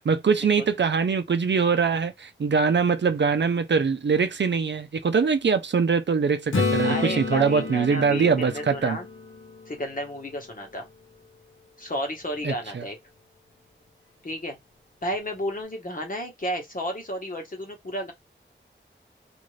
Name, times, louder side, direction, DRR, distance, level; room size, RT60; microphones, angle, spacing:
voice 1, 0.0-9.0 12.4-12.8, right 5 dB, 60° right, 0.5 m, -23 dB
Acoustic guitar / Strum, 6.5-10.3 15.1-15.2, left 3 dB, 80° left, 0.9 m, -30 dB
voice 2, 6.8-9.1 9.7-10.9 11.8-13.0 14.2-14.6 15.0-18.1, equal, 45° left, 1.2 m, -32 dB
2.6 x 2.5 x 3.2 m
cardioid pair, 45°, 20 cm